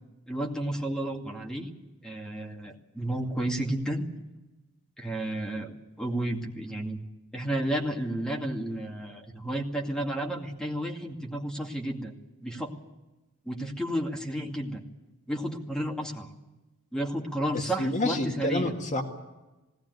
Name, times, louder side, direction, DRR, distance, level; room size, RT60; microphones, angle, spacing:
voice 1, 0.3-1.7 2.0-4.1 5.0-7.0 7.3-12.1 12.4-12.7 13.5-14.8 15.3-16.3 16.9-18.7, right 1 dB, 5° left, 0 dB, 2.3 m, -32 dB
voice 2, 17.5-19.0, left 2 dB, 35° left, 1 dB, 2.1 m, -29 dB
19.5 x 18.0 x 9.5 m, 1.1 s
head